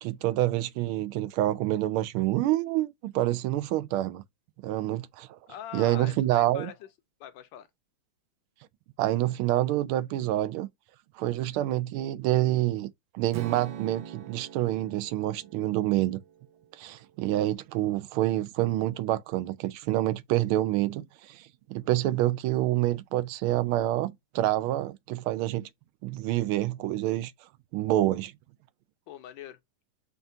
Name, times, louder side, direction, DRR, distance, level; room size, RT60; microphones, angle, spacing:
voice 1, 0.0-4.2 4.6-5.4 5.7-6.7 9.0-10.7 11.2-16.2 16.8-25.7 26.0-27.3 27.7-28.3, right 15 dB, 90° right, 1.4 m, -27 dB
voice 2, 5.5-6.9 7.2-7.7 29.1-29.6, left 11 dB, 70° left, 1.3 m, -42 dB
Strum, 13.3-17.5, right 9 dB, 75° right, 1.3 m, -45 dB
5.5 x 2.4 x 2.6 m
omnidirectional pair, 2.3 m